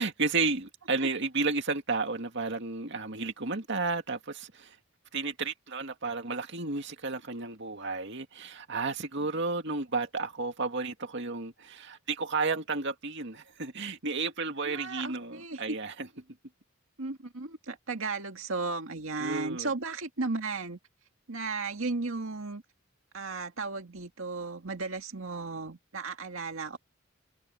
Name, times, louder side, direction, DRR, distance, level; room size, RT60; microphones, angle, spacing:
voice 1, 0.0-4.8 5.1-16.1 19.2-19.7, right 3 dB, 60° right, 2.2 m, -32 dB
voice 2, 14.6-15.8 17.0-20.8 21.3-22.6 23.1-26.8, right 3 dB, 90° right, 1.9 m, -35 dB
head